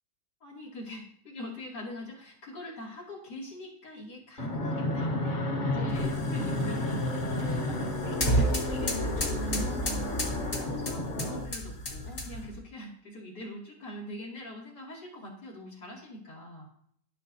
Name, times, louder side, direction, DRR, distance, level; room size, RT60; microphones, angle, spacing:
voice 1, 0.4-5.4 5.6-7.0 7.5-16.7, left 1 dB, 80° left, -4 dB, 3.1 m, -43 dB
Fixed-wing aircraft airplane, 4.4-11.4, left 1 dB, 35° left, 1.0 m, -31 dB
sound 1, 5.9-12.6, equal, 50° left, 2.2 m, -32 dB
14.0 x 6.5 x 2.7 m, 0.67 s
omnidirectional pair, 1.8 m